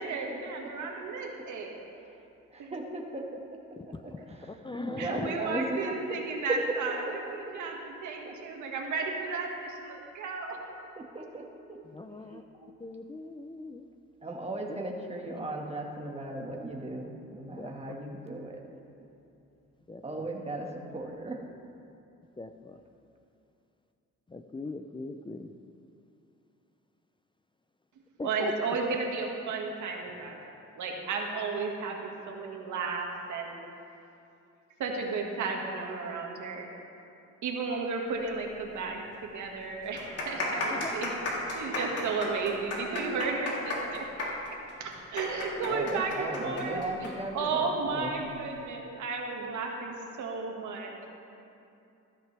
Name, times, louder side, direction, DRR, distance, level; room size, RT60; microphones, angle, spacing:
voice 1, 0.0-1.8 2.6-2.8 5.0-10.6 28.2-30.4 30.8-33.6 34.8-36.6 37.4-41.1 41.5-44.1 44.8-46.8 47.3-51.0, right 4 dB, 75° right, 0 dB, 1.9 m, -33 dB
voice 2, 2.5-3.4 4.0-6.6 7.1-7.3 8.4-8.5 10.6-11.4 11.7-11.8 12.2-12.7 14.2-18.6 20.0-21.4 45.6-48.1, right 2 dB, 20° right, 0 dB, 1.7 m, -37 dB
voice 3, 3.8-4.3 4.6-5.3 11.9-12.4 12.8-13.9 14.7-14.8 15.3-15.4 17.5-17.7 19.9-20.3 22.4-22.8 24.3-25.5 28.2-28.5 40.7-41.1, left 2 dB, 15° left, 7 dB, 0.5 m, -40 dB
sound 1, 38.8-38.9 39.1-39.2 39.8-47.1 47.4-47.5 48.2-48.5, left 2 dB, 55° left, 3.3 m, -34 dB
14.0 x 13.0 x 3.4 m, 2.7 s
cardioid pair, 90°, 30 cm